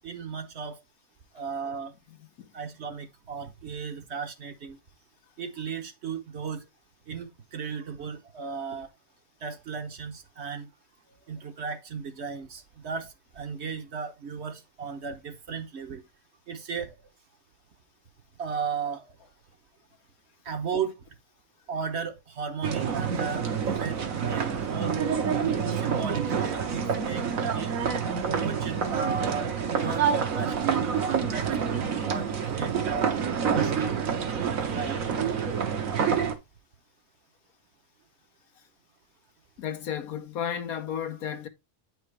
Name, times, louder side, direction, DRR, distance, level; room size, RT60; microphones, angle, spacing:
voice 1, 0.0-0.8 1.3-1.9 2.5-4.8 5.4-6.6 7.1-8.9 9.4-10.7 11.3-16.0 16.5-17.0 18.4-19.1 20.4-21.0 21.7-25.0 25.6-27.7 28.4-33.1 33.6-33.9 34.3-35.0, right 6 dB, 55° right, 1.1 m, -35 dB
sound 1, 22.6-36.3, right 7 dB, 70° right, 1.5 m, -27 dB
voice 2, 39.6-41.5, left 8 dB, 90° left, 1.5 m, -33 dB
8.9 x 4.9 x 3.2 m
omnidirectional pair, 1.5 m